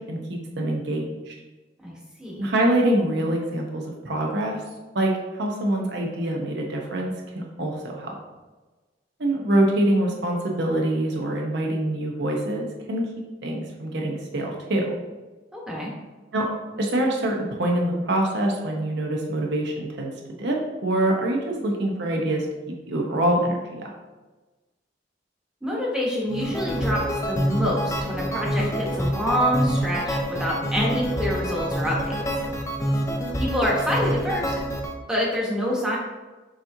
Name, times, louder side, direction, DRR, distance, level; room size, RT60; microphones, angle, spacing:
voice 1, 0.0-1.3 2.4-4.6 4.9-5.1 5.4-8.2 9.2-13.1 13.4-14.9 16.3-16.5 16.8-20.1 20.4-22.5 22.9-23.9, right 1 dB, 65° right, 0 dB, 0.9 m, -25 dB
voice 2, 1.8-2.5 15.5-15.9 25.6-32.2 33.4-34.5 35.1-36.0, equal, 5° right, -4 dB, 1.1 m, -26 dB
sound 1, 26.3-34.9, equal, 15° left, 0.5 m, -27 dB
6.0 x 3.0 x 2.7 m, 1.2 s
head